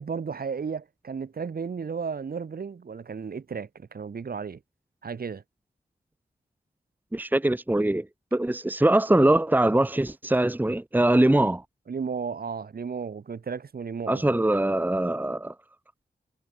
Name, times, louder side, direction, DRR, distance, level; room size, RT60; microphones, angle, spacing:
voice 1, 0.0-4.6 5.0-5.4 11.9-14.4, right 5 dB, 70° right, 3.7 m, -34 dB
voice 2, 7.1-8.1 8.3-11.6 14.1-15.5, right 1 dB, 10° right, 1.2 m, -22 dB
cardioid pair, 60°, 16 cm